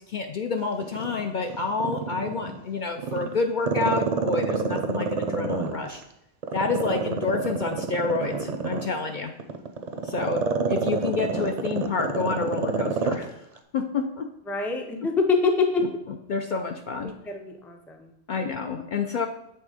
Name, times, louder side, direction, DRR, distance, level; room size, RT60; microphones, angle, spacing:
voice 1, 0.0-6.0 6.5-9.3 10.0-13.4 13.7-14.3 16.3-17.1 18.3-19.3, left 4 dB, 55° left, 4 dB, 0.6 m, -28 dB
Growling, 0.8-2.6 3.0-6.0 6.4-13.2 13.6-13.7, right 4 dB, 45° right, 0.6 m, -27 dB
voice 2, 14.5-15.9 17.0-18.1, left 4 dB, ahead, 4 dB, 0.4 m, -25 dB
7.1 x 3.5 x 4.9 m, 0.84 s
omnidirectional pair, 1.1 m